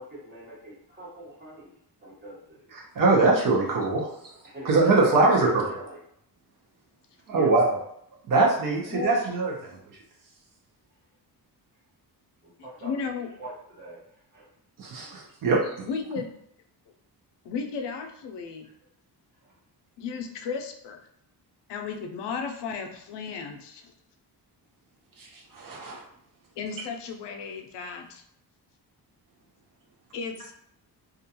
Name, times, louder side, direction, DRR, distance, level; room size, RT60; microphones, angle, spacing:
voice 1, 0.0-1.7 2.0-2.7 4.4-6.0 7.3-7.5 8.8-8.9 12.4-14.0 14.3-14.5 19.4-19.5, right 1 dB, 25° right, -7 dB, 1.0 m, -43 dB
voice 2, 2.7-4.1 4.6-5.5 7.3-7.7 8.3-9.7 14.8-15.7 25.2-25.3 25.5-26.0, right 3 dB, 55° right, -1 dB, 0.6 m, -22 dB
voice 3, 8.9-9.2 12.6-13.3 14.9-15.1 15.8-16.3 17.4-18.7 20.0-21.0 21.7-23.9 26.6-28.2 30.1-30.5, left 5 dB, 85° left, 4 dB, 0.5 m, -34 dB
2.4 x 2.2 x 2.8 m, 0.71 s
wide cardioid pair, 165°, 41 cm